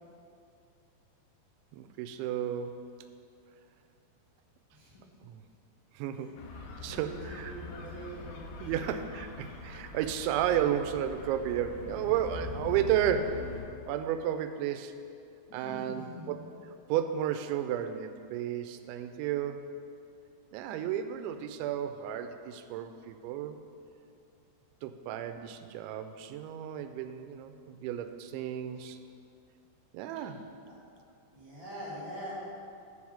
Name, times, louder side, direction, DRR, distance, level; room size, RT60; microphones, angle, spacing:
voice 1, 1.7-2.8 5.2-5.4 5.9-6.3 6.8-7.5 8.6-13.5 13.9-15.0 15.5-16.5 16.9-19.7 20.5-23.6 24.8-29.0 29.9-30.4, right 10 dB, 90° right, 9 dB, 2.9 m, -33 dB
voice 2, 4.7-5.0 6.9-7.1 7.4-8.4 15.5-16.4 31.3-32.3, right 1 dB, 50° left, -11 dB, 1.5 m, -43 dB
sound 1, 6.4-13.7, left 3 dB, 80° left, 2.9 m, -43 dB
10.0 x 4.8 x 7.2 m, 2.4 s
omnidirectional pair, 5.2 m